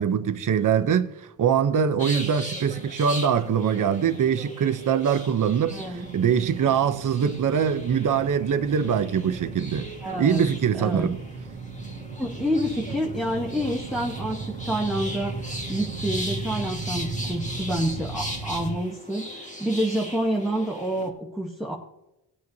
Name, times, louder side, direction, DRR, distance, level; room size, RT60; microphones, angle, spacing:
voice 1, 0.0-9.9 10.2-11.2, right 7 dB, 45° right, 0.6 m, -23 dB
sound 1, 2.0-21.1, equal, 15° left, 1.6 m, -39 dB
sound 2, 5.6-18.8, right 3 dB, 70° right, 0.9 m, -37 dB
voice 2, 5.7-6.1 10.0-10.5 10.7-11.1 12.2-15.4 15.7-21.7, equal, ahead, 1.0 m, -28 dB
18.5 x 9.3 x 2.7 m
wide cardioid pair, 140°, 44 cm